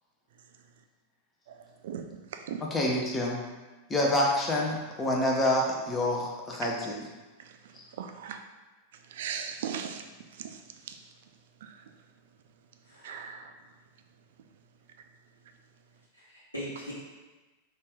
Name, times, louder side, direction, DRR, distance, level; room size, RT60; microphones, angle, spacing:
voice 1, 2.6-3.4 3.9-7.1, left 1 dB, 15° left, -2 dB, 0.7 m, -27 dB
voice 2, 8.0-8.4 9.2-10.0 10.4-10.5 13.0-13.5, right 8 dB, 55° right, 6 dB, 0.3 m, -36 dB
voice 3, 12.8-13.3 16.1-16.9, equal, 85° left, -9 dB, 0.9 m, -41 dB
4.2 x 2.5 x 3.5 m, 1.2 s
figure-of-eight pair, 90°, 0 cm